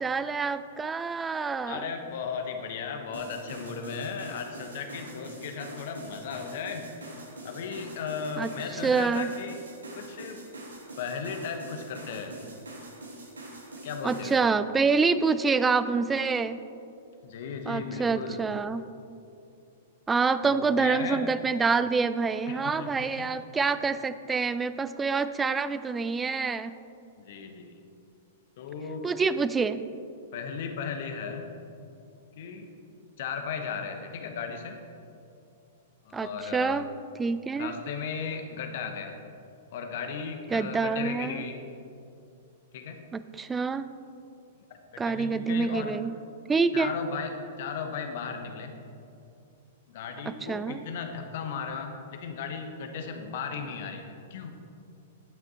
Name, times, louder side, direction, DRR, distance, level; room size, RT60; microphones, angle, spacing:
voice 1, 0.0-1.9 8.4-8.5 8.8-9.3 14.0-16.6 17.7-18.8 20.1-26.7 29.0-29.8 36.1-36.9 37.2-37.7 40.5-41.4 43.1-43.9 45.0-46.1 46.5-46.9 50.5-50.8, right 4 dB, 15° right, 13 dB, 0.4 m, -27 dB
voice 2, 1.6-7.2 7.4-9.6 9.9-10.4 11.0-12.4 13.8-14.4 17.2-18.5 20.4-21.2 22.5-23.3 27.2-27.8 28.6-29.0 30.3-31.5 32.3-32.7 33.2-34.8 36.0-36.8 37.5-39.1 39.7-41.6 42.7-43.0 44.9-45.9 46.7-48.7 49.9-54.6, left 6 dB, 55° left, 5 dB, 1.2 m, -36 dB
sound 1, 3.1-14.4, right 2 dB, 80° right, 2.1 m, -44 dB
10.5 x 9.0 x 4.2 m, 2.7 s
figure-of-eight pair, 105°, 0 cm